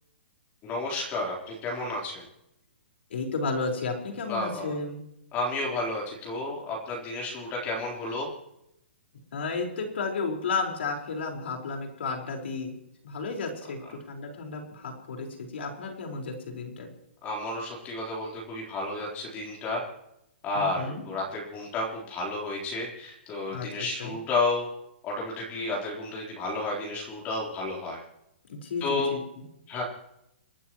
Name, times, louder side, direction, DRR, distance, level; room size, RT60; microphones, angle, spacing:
voice 1, 0.6-2.3 4.3-4.8 5.3-8.3 17.2-19.8 20.4-24.7 25.0-28.0 28.8-29.2 29.7-29.8, left 2 dB, 25° left, -3 dB, 3.8 m, -31 dB
voice 2, 3.1-5.0 9.3-12.7 13.0-16.9 20.5-21.0 23.5-23.7 24.0-24.1 28.5-29.2, left 4 dB, 70° left, 2 dB, 4.7 m, -33 dB
29.5 x 12.5 x 3.1 m, 0.82 s
hypercardioid pair, 145°, 6 cm